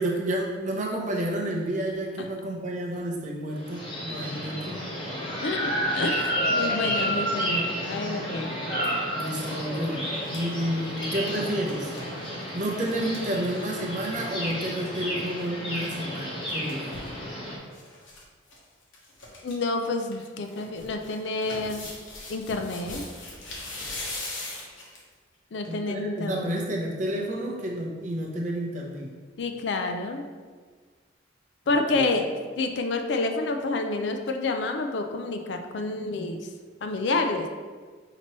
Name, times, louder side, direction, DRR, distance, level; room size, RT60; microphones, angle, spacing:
voice 1, 0.0-4.8 9.2-11.9 12.5-17.0 25.6-29.1 31.7-32.1, right 1 dB, 40° right, -1 dB, 0.6 m, -30 dB
sound 1, 3.6-17.6, equal, 25° left, 1.0 m, -31 dB
voice 2, 5.4-8.6 19.4-21.9 22.3-23.1 25.5-26.6 29.4-30.2 31.7-32.3 32.6-36.4 36.8-37.5, left 3 dB, 60° left, 5 dB, 0.4 m, -29 dB
sound 2, 9.2-9.5 9.9-14.1 14.4-14.5 14.7-14.9 16.2-17.1 17.7-18.2 18.5-18.6 18.9-19.5 19.9-25.1 25.6-25.7, left 2 dB, 80° left, 1.0 m, -41 dB
5.8 x 2.9 x 3.0 m, 1.5 s
head